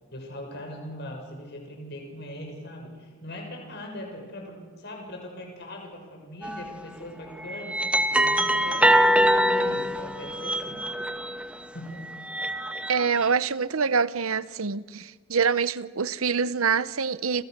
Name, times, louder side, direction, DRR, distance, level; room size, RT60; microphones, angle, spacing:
voice 1, 0.1-10.8 11.7-12.1, left 1 dB, 50° left, 6.8 m, -40 dB
sound 1, 6.4-6.7 7.4-11.5 12.1-13.2, equal, 5° right, 1.2 m, -24 dB
voice 2, 12.9-17.4, right 5 dB, 85° right, 0.9 m, -25 dB
29.5 x 27.5 x 6.8 m
head